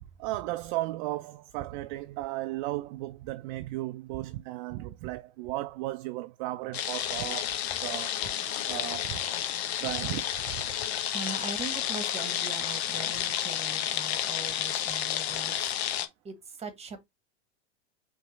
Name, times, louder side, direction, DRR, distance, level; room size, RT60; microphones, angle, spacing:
voice 1, 0.2-8.2 8.7-9.2 9.8-10.6, right 17 dB, 45° right, 0.4 m, -35 dB
sound 1, 6.7-16.1, left 10 dB, 65° left, 1.0 m, -31 dB
voice 2, 10.8-15.6 16.2-17.0, right 4 dB, 20° right, 1.2 m, -41 dB
5.4 x 3.2 x 3.1 m
hypercardioid pair, 115°, 35 cm